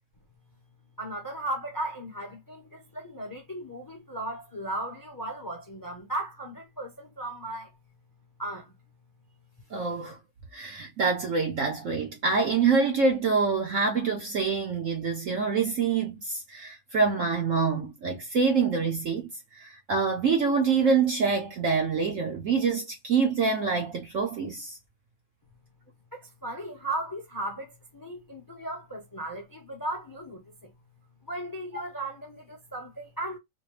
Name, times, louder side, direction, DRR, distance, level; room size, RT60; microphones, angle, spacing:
voice 1, 1.0-7.7 8.4-8.7 26.1-30.7 31.3-33.4, right 1 dB, 15° left, 0.8 m, -36 dB
voice 2, 9.7-10.2 10.5-24.8, right 5 dB, 55° right, 0.9 m, -26 dB
4.2 x 2.2 x 3.2 m
omnidirectional pair, 1.9 m